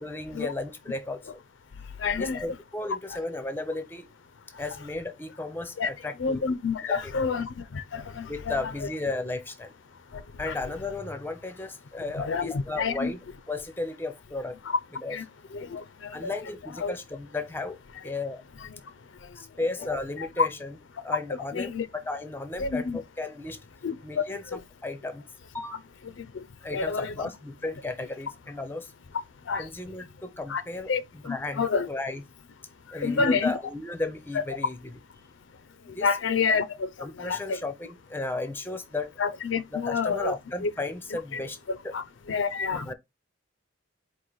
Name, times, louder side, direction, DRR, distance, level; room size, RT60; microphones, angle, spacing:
voice 1, 0.0-1.3 2.2-4.1 4.6-6.5 6.9-7.3 8.3-9.7 10.4-13.2 13.5-14.6 15.0-15.2 16.1-17.8 18.0-18.4 19.4-20.8 21.0-23.6 24.0-24.4 24.8-25.3 25.5-25.8 26.6-28.9 29.6-32.2 32.9-35.0 35.9-36.1 37.0-39.1 39.7-41.6 41.8-41.9 42.7-42.9, left 2 dB, 10° left, 0.5 m, -34 dB
voice 2, 2.0-2.4 5.8-5.9 6.2-8.9 10.1-10.5 12.2-13.1 14.7-14.8 15.1-15.2 15.5-16.3 16.8-16.9 18.6-18.8 20.4-20.5 21.5-21.9 22.6-23.0 23.8-24.6 26.2-26.4 26.7-27.3 29.5-29.7 30.5-30.6 30.9-31.9 33.0-33.5 34.3-34.4 36.0-37.6 39.2-40.3 40.6-40.7 41.3-41.4 41.7-42.9, left 5 dB, 75° left, 0.5 m, -29 dB
4.7 x 2.5 x 3.9 m
head